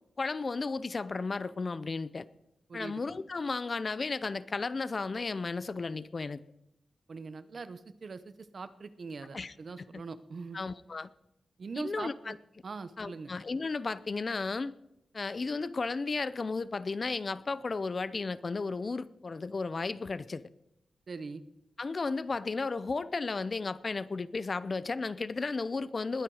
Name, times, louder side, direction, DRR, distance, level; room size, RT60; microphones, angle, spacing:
voice 1, 0.2-2.3 2.7-6.4 9.3-10.0 10.5-11.1 11.8-12.4 13.0-14.8 15.1-20.4 21.8-26.2, left 4 dB, 35° left, 0.5 m, -34 dB
voice 2, 2.7-3.0 7.1-10.6 11.6-12.3 12.6-13.3 21.1-21.4, right 4 dB, 45° right, 0.9 m, -42 dB
20.5 x 9.0 x 4.8 m
wide cardioid pair, 150°, 0 cm